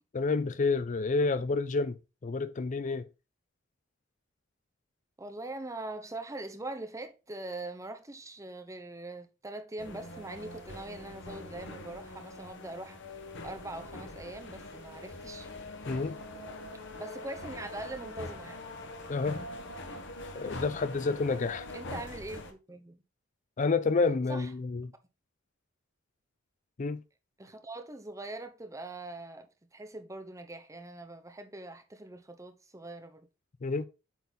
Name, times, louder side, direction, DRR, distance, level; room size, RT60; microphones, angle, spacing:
voice 1, 0.1-3.1 15.9-16.2 19.1-19.4 20.3-21.7 23.6-24.9 26.8-27.0 33.6-33.8, left 3 dB, 40° left, 0.4 m, -29 dB
voice 2, 5.2-13.0 13.4-15.5 16.9-18.7 21.7-23.0 24.3-24.5 27.4-33.3, right 2 dB, 15° right, 0.9 m, -42 dB
sound 1, 9.8-22.5, left 2 dB, 65° left, 1.3 m, -43 dB
8.3 x 4.0 x 4.0 m
head